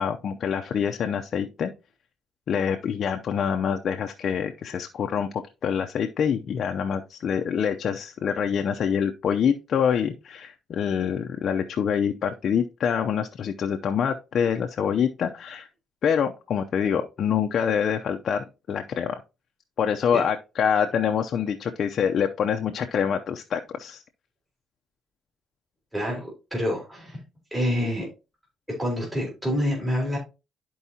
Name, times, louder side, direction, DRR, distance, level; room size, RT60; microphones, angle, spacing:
voice 1, 0.0-1.7 2.5-15.7 16.0-19.2 19.8-24.0, left 7 dB, 60° left, 4 dB, 0.6 m, -26 dB
voice 2, 25.9-27.2 27.5-28.1 28.8-30.2, equal, 15° right, -3 dB, 4.1 m, -27 dB
12.5 x 4.6 x 2.8 m, 0.29 s
cardioid pair, 90°, 0 cm